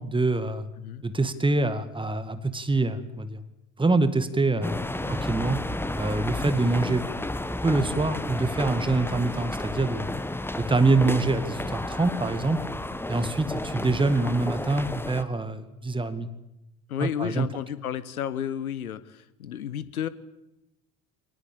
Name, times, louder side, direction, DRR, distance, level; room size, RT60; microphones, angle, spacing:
voice 1, 0.0-0.7 1.0-3.4 3.8-4.8 5.1-5.6 6.0-7.0 7.6-10.1 10.6-12.6 13.1-16.3 17.0-17.5, right 3 dB, 10° right, 12 dB, 2.2 m, -25 dB
sound 1, 4.6-15.2, left 1 dB, 5° left, 1.3 m, -32 dB
voice 2, 16.9-20.1, left 10 dB, 80° left, 17 dB, 1.3 m, -32 dB
24.0 x 19.5 x 8.8 m, 0.89 s
figure-of-eight pair, 60°, 43 cm